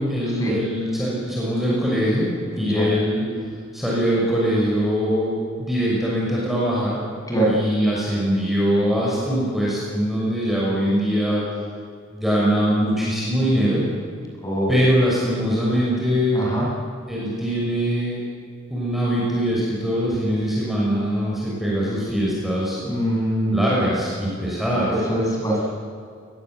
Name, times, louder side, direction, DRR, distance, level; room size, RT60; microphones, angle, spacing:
voice 1, 0.0-2.3 2.6-3.2 3.7-7.0 7.5-11.4 12.1-13.8 14.7-16.5 17.1-18.2 18.7-22.8 23.5-24.9, equal, ahead, -6 dB, 6.4 m, -22 dB
voice 2, 2.6-2.9 7.3-7.6 14.4-14.7 16.3-16.7 22.8-23.6 24.8-25.7, right 1 dB, 15° left, -3 dB, 7.8 m, -23 dB
28.5 x 20.5 x 8.0 m, 2.2 s
head